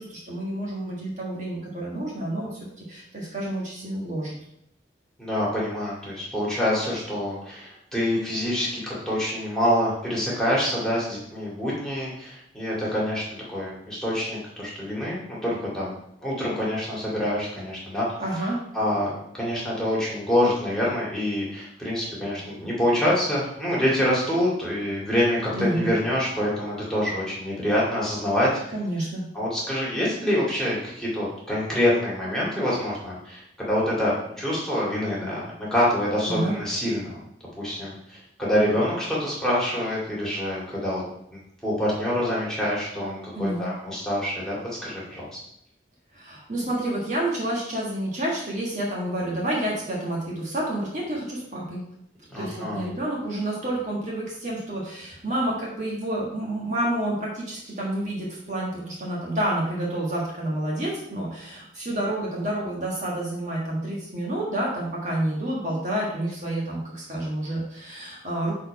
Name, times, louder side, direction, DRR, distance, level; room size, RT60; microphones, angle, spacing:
voice 1, 0.0-4.3 18.2-18.6 25.5-25.9 28.7-29.2 36.2-36.6 43.3-43.7 46.1-51.8 52.4-68.5, right 1 dB, 40° right, -4 dB, 1.6 m, -29 dB
voice 2, 5.2-13.2 13.5-15.9 16.2-18.1 18.7-28.5 29.3-37.1 37.6-41.0 41.6-45.4 52.3-52.9, left 1 dB, 5° left, -7 dB, 2.2 m, -26 dB
6.6 x 4.2 x 4.9 m, 0.77 s
head